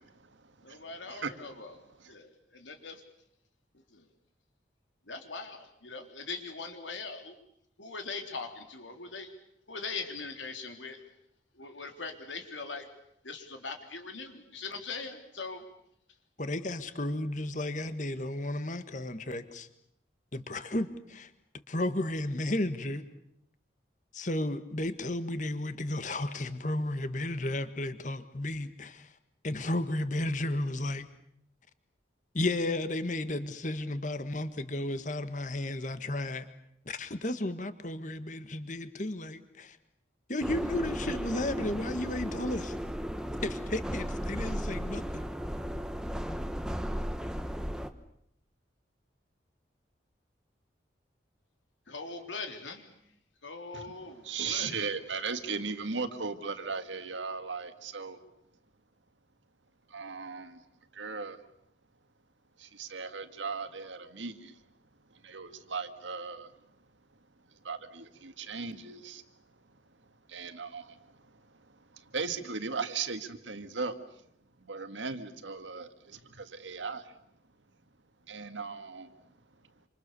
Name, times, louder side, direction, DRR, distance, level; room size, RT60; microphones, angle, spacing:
voice 1, 0.0-1.5 2.0-2.2 53.7-58.2 59.9-60.6 60.9-61.4 62.6-64.6 65.1-66.5 67.5-69.2 70.3-74.2 74.6-77.1 78.3-79.3, right 5 dB, 90° right, 9 dB, 1.9 m, -38 dB
voice 2, 0.6-1.8 2.1-3.0 3.9-4.0 5.1-7.4 7.8-9.3 9.7-11.0 11.6-12.9 13.2-15.6 51.9-52.9 53.4-54.8, left 4 dB, 90° left, 5 dB, 3.6 m, -41 dB
voice 3, 16.4-19.7 20.3-21.3 21.7-23.0 24.1-29.1 29.4-31.1 32.3-36.4 36.8-39.8 40.3-42.8 43.4-45.2, left 1 dB, 40° left, 11 dB, 1.6 m, -33 dB
sound 1, 40.4-47.9, equal, 5° right, 1.1 m, -35 dB
27.5 x 26.5 x 6.9 m, 0.74 s
head